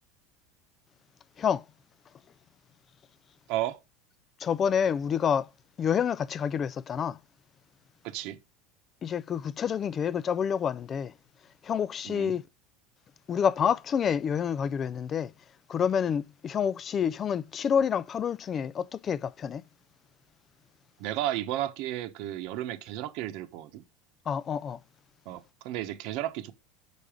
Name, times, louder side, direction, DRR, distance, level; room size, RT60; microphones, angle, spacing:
voice 1, 3.5-3.8 8.0-8.4 12.0-12.3 21.0-23.8 25.2-26.5, right 13 dB, 60° right, 1.0 m, -33 dB
voice 2, 4.4-5.5 5.8-7.2 9.0-11.1 11.6-12.5 13.3-15.3 15.7-19.6 24.3-24.8, left 7 dB, 30° left, 0.4 m, -28 dB
6.7 x 5.2 x 5.0 m
supercardioid pair, 135°, 0 cm